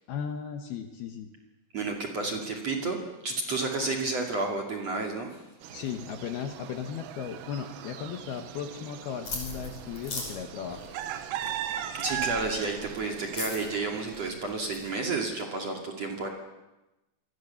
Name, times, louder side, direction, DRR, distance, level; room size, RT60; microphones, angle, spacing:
voice 1, 0.1-1.3 2.2-2.4 5.7-10.8, left 7 dB, 65° left, 6 dB, 2.7 m, -36 dB
voice 2, 1.7-3.0 3.2-5.3 11.9-16.3, right 3 dB, 40° right, 1 dB, 2.8 m, -31 dB
sound 1, 5.6-14.3, right 11 dB, 70° right, 3.3 m, -39 dB
sound 2, 9.3-14.9, left 3 dB, 35° left, 6.5 m, -40 dB
28.0 x 23.5 x 7.1 m, 1.0 s
omnidirectional pair, 5.7 m